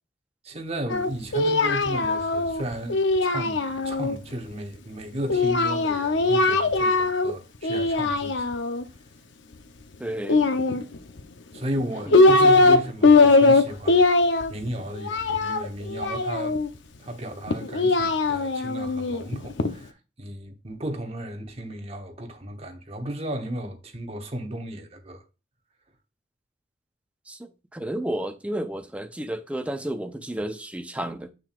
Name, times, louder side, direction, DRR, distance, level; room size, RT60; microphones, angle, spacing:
voice 1, 0.4-8.4 11.5-14.1 14.5-16.6 17.0-25.2, right 1 dB, 30° right, 1.1 m, -34 dB
Singing, 0.9-4.2 5.3-7.3 7.6-8.8 10.2-11.2 11.8-12.8 13.0-16.7 17.5-19.7, left 3 dB, 70° left, 0.7 m, -20 dB
voice 2, 10.0-10.5 12.1-12.5 27.3-31.3, right 1 dB, 5° right, 0.6 m, -32 dB
6.8 x 6.1 x 2.4 m
head